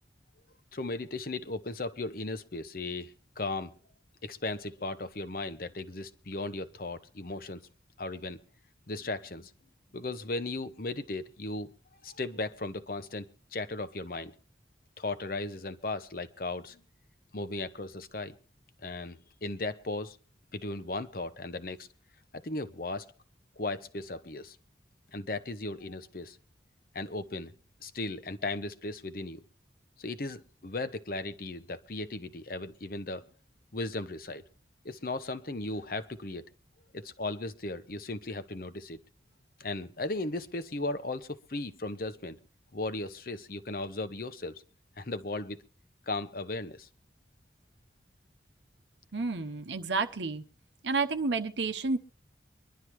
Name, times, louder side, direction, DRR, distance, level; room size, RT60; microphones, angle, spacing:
voice 1, 0.7-3.7 4.2-7.7 8.0-8.4 8.9-9.5 9.9-11.7 12.0-14.3 15.0-16.8 17.3-18.3 18.8-20.2 20.5-21.9 22.3-23.1 23.6-24.6 25.1-26.4 26.9-27.5 27.8-29.4 30.0-33.3 33.7-34.4 34.8-36.5 36.9-39.0 39.6-42.4 42.7-44.6 45.0-45.6 46.1-46.9, left 2 dB, 50° left, 0.9 m, -36 dB
voice 2, 49.1-50.4 50.8-52.0, right 4 dB, 80° right, 0.9 m, -30 dB
24.0 x 11.5 x 3.1 m
head